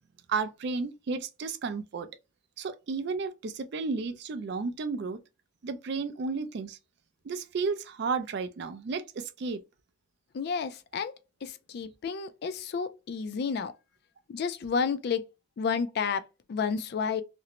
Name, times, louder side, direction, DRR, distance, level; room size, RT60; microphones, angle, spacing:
voice 1, 0.3-2.1 2.6-5.2 5.6-6.8 7.2-9.6, right 4 dB, 50° right, 0.3 m, -33 dB
voice 2, 10.3-11.1 11.4-13.7 14.3-15.3 15.6-16.2 16.5-17.2, left 5 dB, 50° left, 0.3 m, -31 dB
2.5 x 2.0 x 2.8 m
head